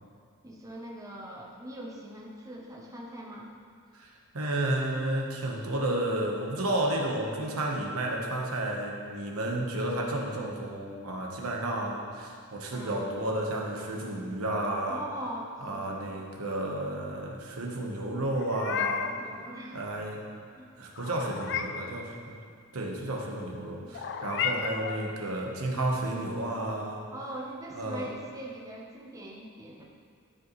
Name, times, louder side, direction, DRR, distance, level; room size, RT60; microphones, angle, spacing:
voice 1, 0.4-3.5 12.7-13.1 14.9-16.2 19.0-19.9 20.5-20.7 27.1-29.8, right 1 dB, 15° right, -3 dB, 0.8 m, -42 dB
voice 2, 4.0-15.0 15.6-19.1 19.7-20.2 20.8-22.4 22.7-27.0 27.7-28.1, right 1 dB, 80° right, -1 dB, 1.2 m, -32 dB
Meow, 18.3-19.2 21.0-21.9 23.9-25.1, left 7 dB, 55° left, 0.4 m, -33 dB
12.5 x 5.1 x 3.1 m, 2.1 s
head